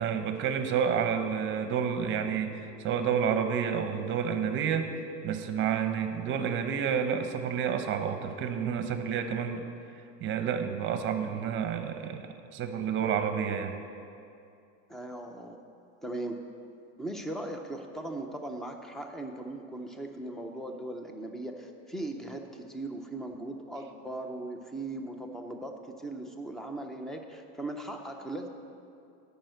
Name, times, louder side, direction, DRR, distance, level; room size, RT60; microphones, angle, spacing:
voice 1, 0.0-9.6 10.2-13.8, right 7 dB, 30° right, 8 dB, 0.8 m, -30 dB
voice 2, 14.9-15.6 16.0-16.4 17.0-28.5, right 1 dB, ahead, 4 dB, 0.3 m, -38 dB
10.5 x 5.6 x 7.8 m, 2.5 s
supercardioid pair, 150°, 37 cm